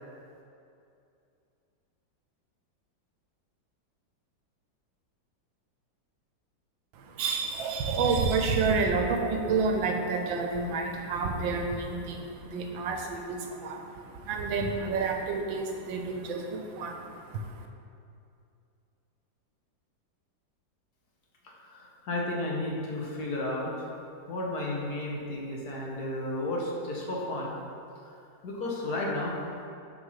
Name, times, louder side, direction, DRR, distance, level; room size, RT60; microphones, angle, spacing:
voice 1, 6.9-17.7, right 4 dB, 90° right, 3 dB, 1.5 m, -29 dB
voice 2, 21.7-23.7 24.3-27.5 28.4-29.3, left 1 dB, 60° left, -3 dB, 1.6 m, -32 dB
6.7 x 4.6 x 5.6 m, 2.5 s
omnidirectional pair, 2.0 m